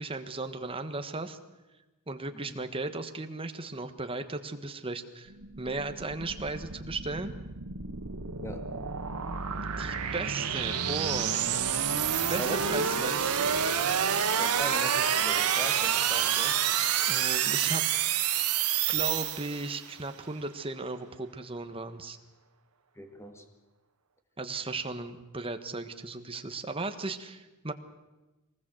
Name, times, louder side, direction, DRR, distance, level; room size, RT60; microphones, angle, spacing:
voice 1, 0.0-1.4 2.1-7.3 9.6-11.6 12.1-13.9 17.1-17.8 18.9-22.2 24.4-27.7, right 3 dB, 25° right, 8 dB, 1.4 m, -36 dB
sound 1, 5.3-19.9, right 8 dB, 85° right, 1.6 m, -29 dB
voice 2, 8.4-8.7 12.4-12.9 14.2-16.6 23.0-23.4, equal, 10° left, 5 dB, 2.1 m, -40 dB
23.5 x 19.0 x 7.9 m, 1.1 s
head